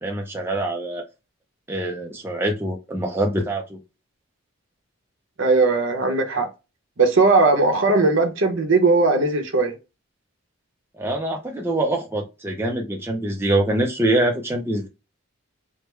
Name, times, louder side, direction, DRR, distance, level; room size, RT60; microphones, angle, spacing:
voice 1, 0.0-1.0 1.7-3.8 10.9-14.9, right 1 dB, 10° right, 0.4 m, -24 dB
voice 2, 5.4-6.5 7.0-9.7, right 3 dB, 60° right, 0.8 m, -18 dB
3.3 x 2.1 x 3.1 m
head